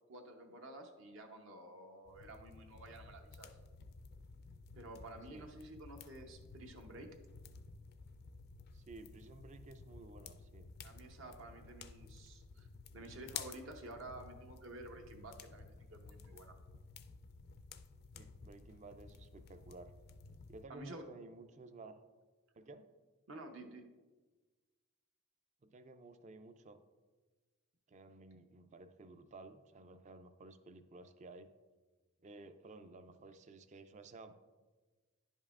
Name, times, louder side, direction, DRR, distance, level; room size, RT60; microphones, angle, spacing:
voice 1, 0.1-3.5 4.8-7.1 10.8-12.7 12.9-16.6 20.7-21.0 23.3-23.9, right 2 dB, 65° right, 3 dB, 0.7 m, -51 dB
sound 1, 2.1-20.6, left 5 dB, 50° left, 0.3 m, -53 dB
voice 2, 8.7-10.7 18.1-19.9 20.5-22.0 22.5-22.9 25.6-26.8 27.9-31.5 32.2-34.3, right 2 dB, 35° right, 10 dB, 0.3 m, -54 dB
10.5 x 5.4 x 2.4 m, 1.3 s
head